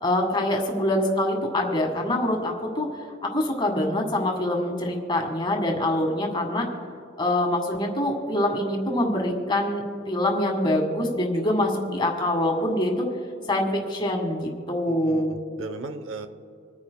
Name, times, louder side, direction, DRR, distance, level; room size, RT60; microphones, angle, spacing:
voice 1, 0.0-2.9 3.2-6.7 7.2-13.1 13.5-15.4, left 1 dB, 25° left, 1 dB, 1.7 m, -25 dB
voice 2, 14.9-16.3, right 3 dB, 80° right, 9 dB, 0.8 m, -37 dB
27.0 x 9.7 x 2.2 m, 2.5 s
head